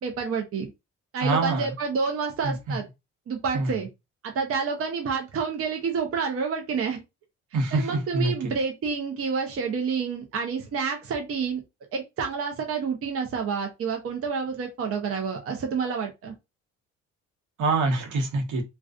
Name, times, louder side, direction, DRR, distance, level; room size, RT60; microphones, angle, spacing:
voice 1, 0.0-0.7 1.1-2.9 3.3-3.9 4.2-7.0 7.7-11.6 11.9-16.3, right 5 dB, 50° right, 0.6 m, -29 dB
voice 2, 1.2-1.7 2.4-2.8 3.5-3.7 7.5-8.5 17.6-18.6, right 3 dB, 75° right, 0.9 m, -25 dB
2.4 x 2.3 x 2.3 m
cardioid pair, 90°, 30 cm